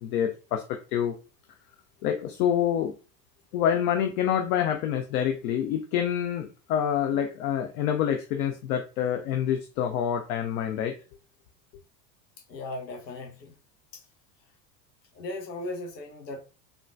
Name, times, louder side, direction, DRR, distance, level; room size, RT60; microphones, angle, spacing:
voice 1, 0.0-1.1 2.0-2.9 3.5-10.9, left 9 dB, 65° left, 5 dB, 0.6 m, -27 dB
voice 2, 12.5-13.5 13.9-14.0 15.1-16.4, left 2 dB, 90° left, 2 dB, 0.9 m, -37 dB
3.7 x 2.2 x 2.4 m, 0.33 s
hypercardioid pair, 85°, 49 cm